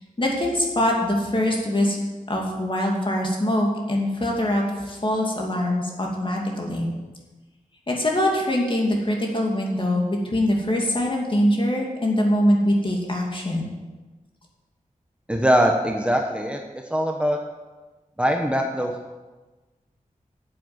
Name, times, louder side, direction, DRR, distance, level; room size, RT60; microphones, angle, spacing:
voice 1, 0.2-2.0 2.3-6.9 7.9-13.7, left 1 dB, 35° left, -1 dB, 2.6 m, -23 dB
voice 2, 15.3-16.6 16.9-17.4 18.2-19.1, equal, 10° right, 2 dB, 1.0 m, -22 dB
9.7 x 7.8 x 7.9 m, 1.2 s
wide cardioid pair, 100°, 14 cm